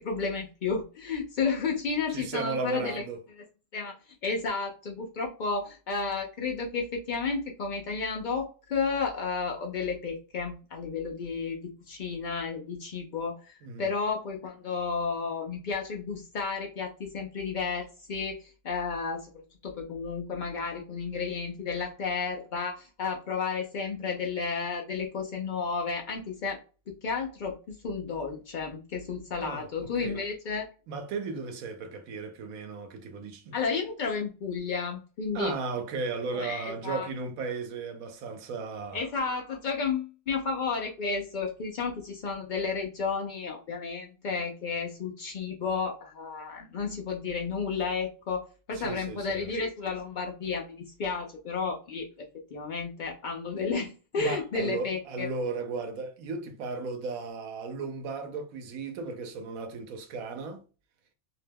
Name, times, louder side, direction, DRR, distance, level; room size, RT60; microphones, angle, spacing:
voice 1, 0.0-3.0 3.7-4.0 4.2-19.3 19.6-26.6 26.9-30.7 33.5-35.5 36.3-37.1 38.9-52.1 52.5-55.3, left 5 dB, 85° left, 0.4 m, -32 dB
voice 2, 2.1-3.2 13.6-13.9 29.4-30.2 30.9-33.6 35.3-39.0 48.7-49.5 54.2-60.6, right 4 dB, 85° right, 1.1 m, -35 dB
2.7 x 2.2 x 3.3 m
omnidirectional pair, 1.4 m